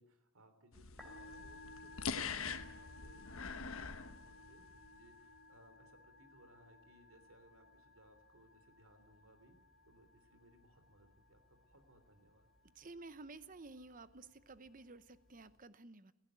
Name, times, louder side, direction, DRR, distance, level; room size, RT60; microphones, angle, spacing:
voice 1, 0.0-9.6 9.9-12.5, right 1 dB, 75° right, 9 dB, 3.4 m, -65 dB
sound 1, 0.7-4.9, left 5 dB, 75° left, 1.2 m, -44 dB
Musical instrument, 0.9-15.6, left 2 dB, ahead, 4.2 m, -59 dB
voice 2, 12.7-16.1, right 3 dB, 40° right, 14 dB, 0.9 m, -53 dB
18.0 x 15.5 x 9.3 m, 1.0 s
head